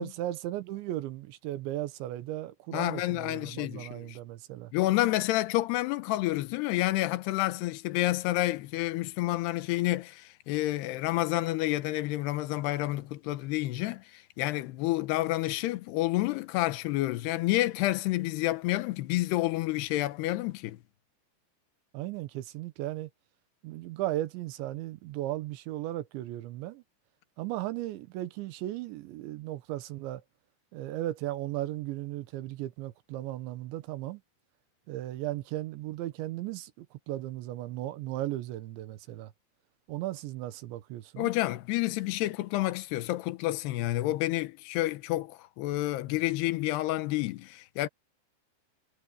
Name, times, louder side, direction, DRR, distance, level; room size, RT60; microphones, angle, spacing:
voice 1, 0.0-4.7 21.9-23.1 23.6-26.8 27.4-30.2 30.7-34.2 34.9-39.3 39.9-41.3, right 15 dB, 85° right, 3.5 m, -36 dB
voice 2, 2.7-4.2 4.7-20.8 41.2-47.9, left 17 dB, 75° left, 2.9 m, -29 dB
omnidirectional pair, 5.1 m